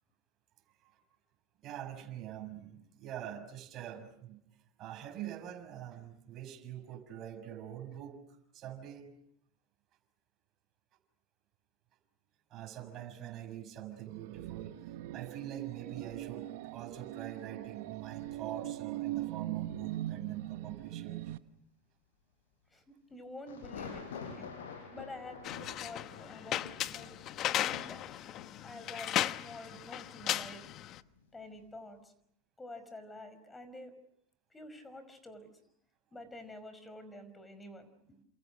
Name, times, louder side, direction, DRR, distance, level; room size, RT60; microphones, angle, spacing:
voice 1, 0.7-1.0 1.6-4.4 4.8-9.1 12.5-21.2, right 11 dB, 45° right, 7 dB, 6.1 m, -45 dB
sound 1, 14.1-21.4, right 15 dB, 70° right, 1.3 m, -41 dB
sound 2, 19.8-20.4 23.5-31.2 31.6-31.8, left 6 dB, 80° left, 5.9 m, -48 dB
voice 2, 23.1-27.1 27.5-28.2 28.6-30.7 31.3-32.1 32.6-33.9 34.5-35.5 36.1-38.2, left 1 dB, 15° left, 12 dB, 5.4 m, -49 dB
sound 3, 25.4-31.0, left 12 dB, 45° left, 1.0 m, -36 dB
30.0 x 27.5 x 6.5 m, 0.72 s
hypercardioid pair, 95°, 0 cm